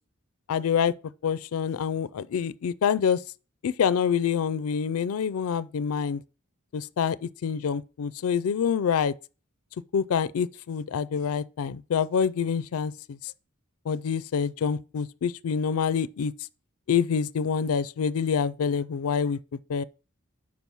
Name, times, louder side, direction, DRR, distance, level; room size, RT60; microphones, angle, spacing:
voice 1, 0.5-0.9 1.2-3.2 3.6-6.2 6.7-9.1 9.9-13.2 13.9-16.3 16.9-19.4 19.7-19.8, left 7 dB, 90° left, 0.4 m, -26 dB
5.4 x 4.8 x 6.0 m
head